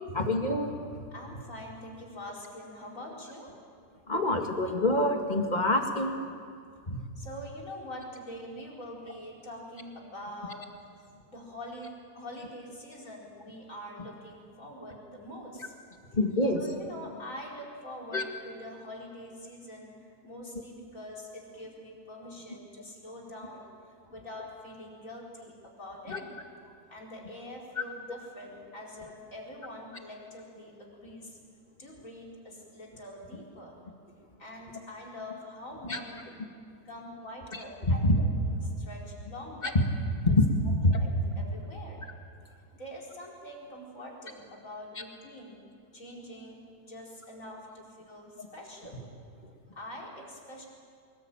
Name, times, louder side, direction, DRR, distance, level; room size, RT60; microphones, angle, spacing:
voice 1, 0.1-0.9 4.1-6.3 6.9-7.0 16.1-16.6 18.1-18.2 26.1-26.2 35.8-36.0 37.5-38.2 39.6-39.7 40.2-40.9 48.4-48.5, left 1 dB, 30° left, 3 dB, 2.2 m, -26 dB
voice 2, 1.1-3.5 7.1-10.7 11.3-15.7 16.5-26.3 26.9-31.4 31.8-33.8 34.4-36.4 36.8-39.8 40.9-42.0 42.8-45.7 45.9-49.0 49.7-50.7, left 1 dB, 55° left, -2 dB, 5.0 m, -44 dB
24.5 x 21.0 x 9.1 m, 2.2 s
omnidirectional pair, 1.6 m